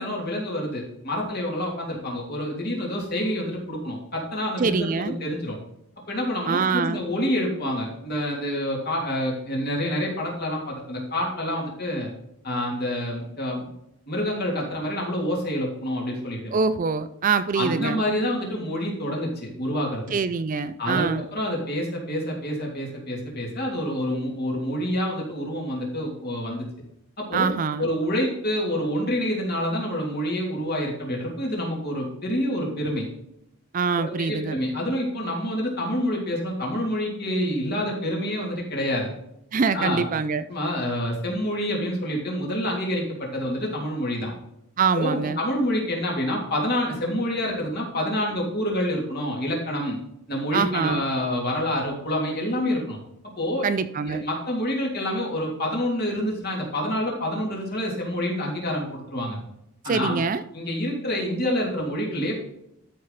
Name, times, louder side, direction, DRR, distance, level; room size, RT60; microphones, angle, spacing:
voice 1, 0.0-5.6 6.1-12.1 12.4-13.7 14.1-16.5 17.5-20.0 20.8-26.7 27.2-27.5 27.8-33.1 33.9-39.1 39.7-40.1 40.5-44.3 44.9-50.0 50.3-53.0 53.4-53.7 54.0-59.4 59.8-60.2 60.5-62.5, equal, 45° left, -1 dB, 3.0 m, -27 dB
voice 2, 4.6-5.2 6.5-7.0 16.5-18.0 20.1-21.3 27.3-27.9 33.7-34.6 39.5-40.4 44.8-45.4 50.5-51.0 53.6-54.2 59.8-60.4, right 5 dB, 35° right, 12 dB, 0.4 m, -24 dB
12.5 x 5.8 x 4.1 m, 0.82 s
head